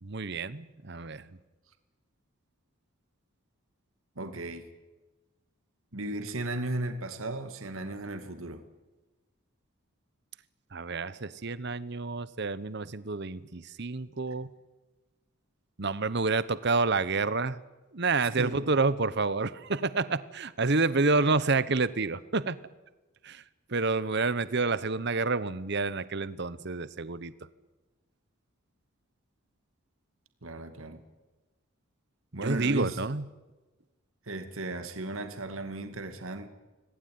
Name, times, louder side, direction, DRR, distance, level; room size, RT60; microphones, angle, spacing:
voice 1, 0.0-1.3 10.7-14.5 15.8-17.6 17.9-22.6 23.2-23.4 23.7-27.3 32.4-33.2, right 3 dB, 50° right, 16 dB, 1.0 m, -29 dB
voice 2, 4.2-4.7 5.9-8.6 18.4-18.7 30.4-31.0 32.3-33.0 34.3-36.5, right 2 dB, 70° right, 8 dB, 2.3 m, -35 dB
26.0 x 19.5 x 9.5 m, 1.2 s
head